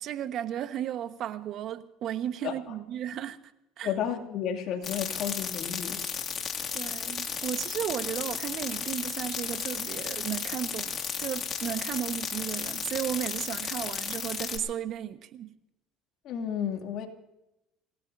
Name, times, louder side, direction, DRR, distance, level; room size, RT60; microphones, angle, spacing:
voice 1, 0.0-3.4 3.8-3.9 6.7-15.5, right 10 dB, 55° right, 1.2 m, -34 dB
voice 2, 3.8-6.0 16.2-17.1, left 9 dB, 60° left, 2.5 m, -32 dB
sound 1, 4.8-14.6, left 7 dB, 40° left, 2.2 m, -34 dB
26.5 x 17.0 x 2.7 m
supercardioid pair, 105°, 0 cm